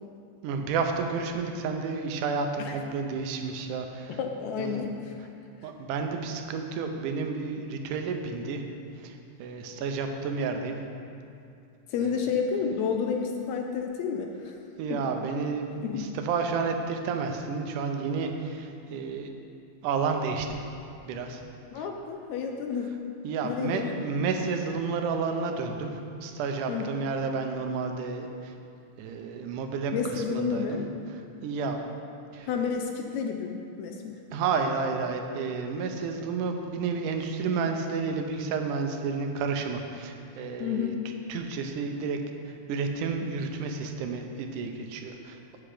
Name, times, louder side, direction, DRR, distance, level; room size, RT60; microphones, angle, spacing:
voice 1, 0.4-4.2 4.6-4.8 5.6-8.6 9.0-10.8 12.0-12.3 14.8-19.3 19.8-20.7 21.1-21.4 21.8-21.9 23.2-28.5 29.0-30.8 31.1-31.8 32.3-32.5 34.3-40.9 41.3-42.2 42.5-45.4, right 5 dB, 85° right, 4 dB, 2.3 m, -31 dB
voice 2, 4.1-5.2 5.6-5.7 11.9-14.6 14.9-15.0 15.8-16.1 21.7-22.9 23.4-23.8 26.7-26.9 29.9-30.8 32.5-34.2 40.6-41.0, left 6 dB, 75° left, 3 dB, 1.8 m, -30 dB
8.5 x 7.8 x 4.9 m, 2.5 s
omnidirectional pair, 3.6 m